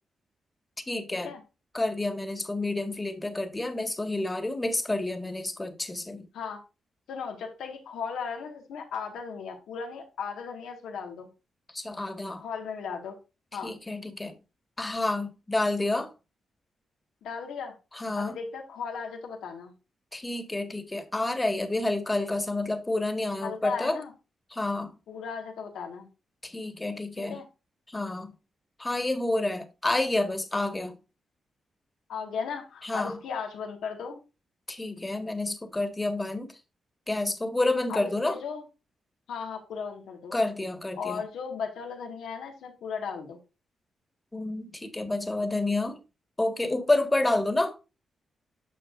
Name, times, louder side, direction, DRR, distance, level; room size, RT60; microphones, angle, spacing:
voice 1, 0.9-1.3 1.7-6.3 11.7-12.4 13.6-14.3 14.8-16.1 17.9-18.3 20.1-24.0 24.5-24.9 26.4-27.4 27.9-28.3 28.8-31.0 32.8-33.2 34.7-36.6 37.1-38.4 40.3-41.2 44.3-46.0 46.4-47.8, left 2 dB, 20° left, 1.7 m, -29 dB
voice 2, 7.1-11.3 12.4-13.2 13.5-13.7 17.2-17.8 18.2-19.7 23.4-24.1 25.1-26.1 27.2-27.5 32.1-34.2 37.9-38.6 39.3-40.3 41.0-43.4, left 6 dB, 80° left, 1.8 m, -36 dB
9.1 x 6.4 x 2.6 m
supercardioid pair, 50°, 0 cm